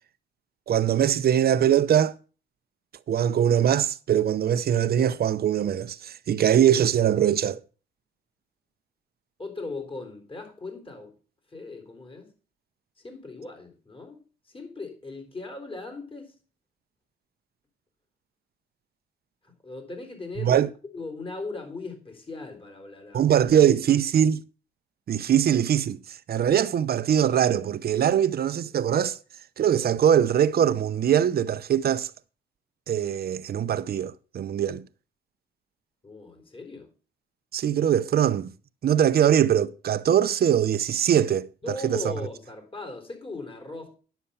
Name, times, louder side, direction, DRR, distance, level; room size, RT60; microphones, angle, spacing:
voice 1, 0.7-2.1 3.1-7.6 20.4-20.7 23.1-24.4 25.1-26.0 26.3-29.2 29.6-32.1 32.9-34.8 37.5-38.5 38.8-42.1, right 9 dB, 50° right, 0.7 m, -22 dB
voice 2, 9.4-11.2 11.5-12.3 13.0-16.4 19.4-20.6 20.9-23.3 36.0-36.9 41.6-43.9, left 3 dB, 25° left, 3.8 m, -38 dB
10.0 x 7.0 x 5.6 m
cardioid pair, 90°, 20 cm